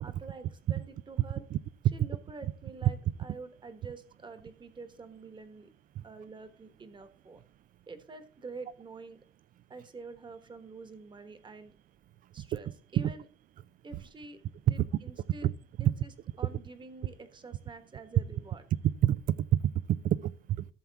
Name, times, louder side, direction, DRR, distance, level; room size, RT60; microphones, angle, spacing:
voice 1, 0.0-1.5 1.9-5.7 6.0-7.4 7.9-9.2 9.7-11.7 12.3-13.2 13.8-14.4 14.6-15.5 15.8-16.1 16.4-18.6, right 3 dB, 25° right, 1.3 m, -47 dB
voice 2, 18.8-20.7, right 12 dB, 55° right, 0.4 m, -27 dB
13.5 x 7.1 x 3.5 m
cardioid pair, 110°, 17 cm